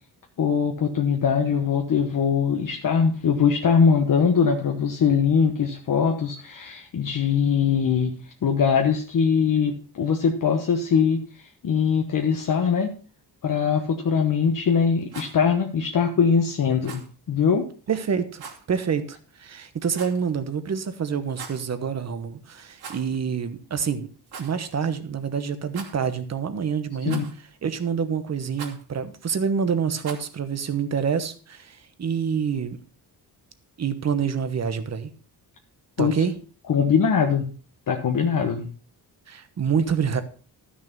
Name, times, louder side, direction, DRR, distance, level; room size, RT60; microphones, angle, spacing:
voice 1, 0.4-8.1 8.4-11.2 11.6-12.9 13.4-17.0 17.3-17.7 27.0-27.2 36.0-36.2 36.7-37.5 37.9-38.7, left 6 dB, 55° left, 3 dB, 1.2 m, -21 dB
Rattle, 15.0-15.4 16.8-17.1 18.4-18.6 19.9-20.3 21.2-21.7 22.7-23.2 23.4-23.5 24.3-24.5 25.7-26.2 27.1-27.5 28.5-28.8 30.0-30.3, right 5 dB, 65° right, 2.8 m, -41 dB
voice 2, 17.9-24.1 24.4-27.2 27.6-32.8 33.8-35.1 36.0-36.4 39.3-40.2, right 6 dB, 40° right, 11 dB, 1.1 m, -27 dB
13.0 x 6.3 x 5.3 m, 0.38 s
wide cardioid pair, 170°, 40 cm